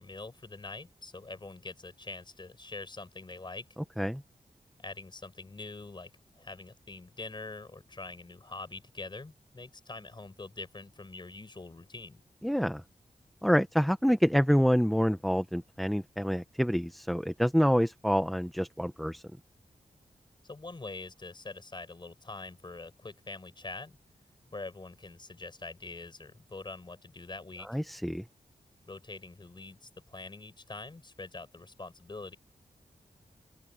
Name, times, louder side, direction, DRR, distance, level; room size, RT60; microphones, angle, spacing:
voice 1, 0.0-3.7 4.8-6.1 6.4-12.2 20.4-24.0 24.5-27.7 28.9-32.4, left 3 dB, 30° left, 4.8 m, -44 dB
voice 2, 12.4-12.8 13.4-19.2 27.7-28.2, equal, ahead, 0.8 m, -27 dB
open air
wide cardioid pair, 110°, 15 cm